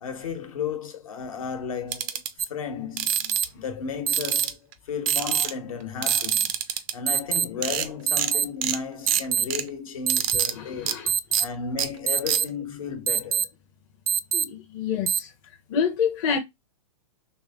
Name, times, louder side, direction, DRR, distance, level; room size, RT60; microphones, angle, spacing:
voice 1, 0.0-2.2 2.5-4.6 4.9-6.5 6.9-11.0 11.4-13.5, left 6 dB, 70° left, 1.3 m, -34 dB
sound 1, 1.9-2.3 3.0-3.5 4.1-4.7 5.1-5.5 6.0-6.9 7.4-7.5 7.6-7.9 8.2-8.3 8.6-8.8 9.1-9.6 10.1-10.5 10.9-11.0 11.3-11.4 11.8-11.9 12.3-12.4, right 10 dB, 25° right, 0.3 m, -28 dB
sound 2, 2.4-2.5 3.1-3.5 4.1-4.5 5.1-5.5 6.1-6.5 7.1-7.5 8.1-8.5 9.1-9.4 10.1-10.4 11.1-11.4 12.1-12.4 13.1-13.4 14.1-14.4 15.1-15.2, right 8 dB, 90° right, 0.4 m, -23 dB
voice 2, 10.5-11.1 14.3-15.3 15.7-16.4, left 7 dB, 35° left, 0.7 m, -27 dB
3.1 x 2.9 x 3.6 m
hypercardioid pair, 150°, 18 cm